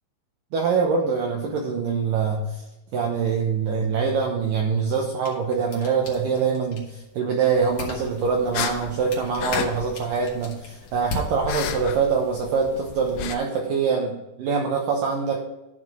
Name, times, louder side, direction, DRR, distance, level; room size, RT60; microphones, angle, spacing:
voice 1, 0.5-2.6 2.9-15.5, right 5 dB, 75° right, 0 dB, 2.0 m, -24 dB
sound 1, 4.9-12.0, left 2 dB, 55° left, 2.7 m, -39 dB
sound 2, 7.6-13.4, left 9 dB, 90° left, 3.0 m, -34 dB
12.0 x 4.7 x 5.0 m, 1.0 s
omnidirectional pair, 5.2 m